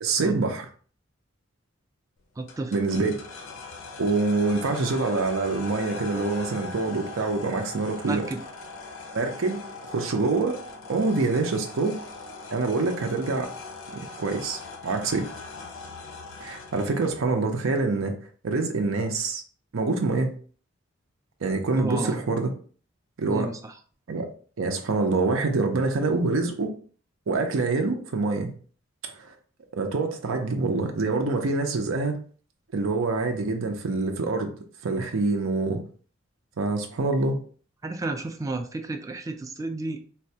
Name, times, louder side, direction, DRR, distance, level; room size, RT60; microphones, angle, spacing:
voice 1, 0.0-0.7 2.7-3.2 4.0-8.2 9.1-10.6 10.9-12.0 12.5-13.5 13.9-15.3 16.4-18.1 18.4-19.4 19.7-20.3 21.4-22.5 23.2-23.5 24.1-24.3 24.6-26.7 27.3-28.5 29.0-29.3 29.8-32.2 32.7-34.5 34.8-35.8 36.6-37.4, right 3 dB, 80° right, 4 dB, 0.5 m, -25 dB
voice 2, 2.4-2.8 8.1-8.4 21.8-22.2 23.3-23.7 37.8-40.0, right 2 dB, 15° right, 6 dB, 0.3 m, -32 dB
sound 1, 2.5-17.3, left 3 dB, 70° left, 0.5 m, -40 dB
3.9 x 2.2 x 2.7 m, 0.43 s
head